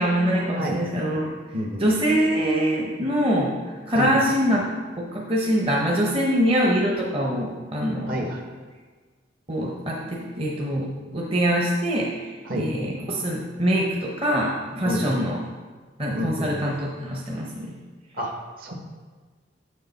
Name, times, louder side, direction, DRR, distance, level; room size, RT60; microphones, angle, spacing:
voice 1, 0.0-1.3 1.8-8.2 9.5-15.4 16.0-17.7, equal, 30° right, -2 dB, 0.8 m, -24 dB
voice 2, 1.5-1.9 3.9-4.1 8.1-8.4 12.4-12.7 14.8-15.1 16.1-16.5 18.1-18.3 18.6-18.7, equal, 50° right, 2 dB, 1.1 m, -28 dB
7.2 x 6.6 x 4.1 m, 1.4 s
head